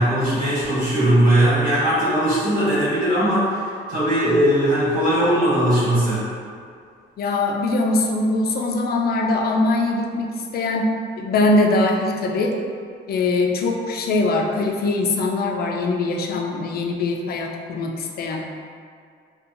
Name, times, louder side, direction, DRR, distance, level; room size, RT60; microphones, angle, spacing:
voice 1, 0.0-3.5 3.9-6.2, right 1 dB, 45° right, -12 dB, 1.3 m, -19 dB
voice 2, 7.2-10.9 11.2-12.5 13.1-18.4, left 2 dB, 50° left, 1 dB, 0.4 m, -22 dB
2.6 x 2.2 x 2.5 m, 2.2 s
cardioid pair, 90°, 20 cm